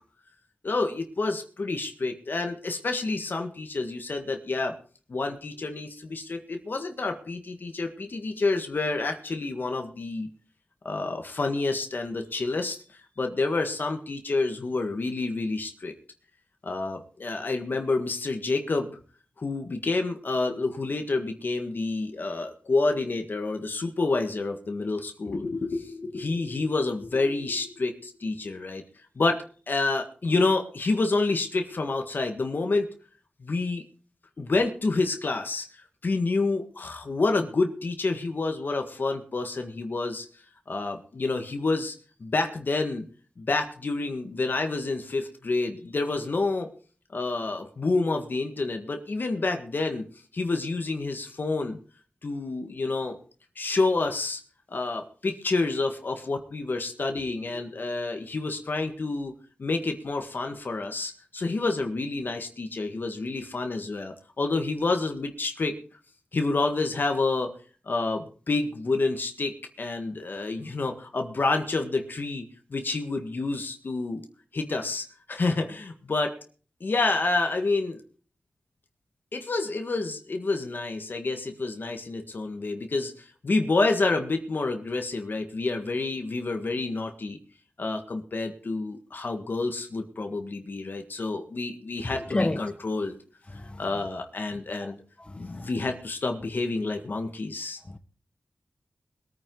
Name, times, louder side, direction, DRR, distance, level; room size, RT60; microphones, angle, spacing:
voice 1, 0.6-4.7 5.1-10.3 10.9-15.9 16.6-19.0 19.4-28.8 29.2-32.9 33.4-33.8 34.4-35.7 36.0-40.3 40.7-42.0 42.2-43.0 43.4-46.7 47.1-50.1 50.3-51.8 52.2-53.2 53.6-54.4 54.7-59.3 59.6-65.8 66.3-67.5 67.9-72.5 72.7-74.2 74.5-76.3 76.8-78.0 79.3-87.4 87.8-93.2 93.8-95.0 95.4-97.8, left 3 dB, 60° left, 1.7 m, -28 dB
voice 2, 92.3-92.6 93.5-93.8 94.8-94.9 95.4-95.7, left 2 dB, 30° left, 1.3 m, -29 dB
21.5 x 9.4 x 3.9 m
wide cardioid pair, 65°, 4 cm